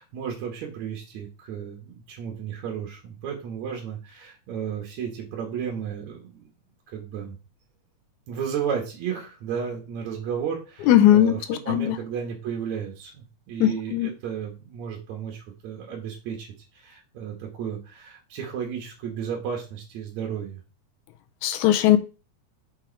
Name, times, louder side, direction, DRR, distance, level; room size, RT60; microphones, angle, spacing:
voice 1, 0.0-6.3 6.9-7.4 8.3-20.6, right 7 dB, 70° right, 0 dB, 2.6 m, -33 dB
voice 2, 10.9-12.0 13.6-14.1 21.4-22.0, left 12 dB, 80° left, 9 dB, 2.0 m, -19 dB
6.1 x 4.6 x 4.5 m, 0.32 s
omnidirectional pair, 3.6 m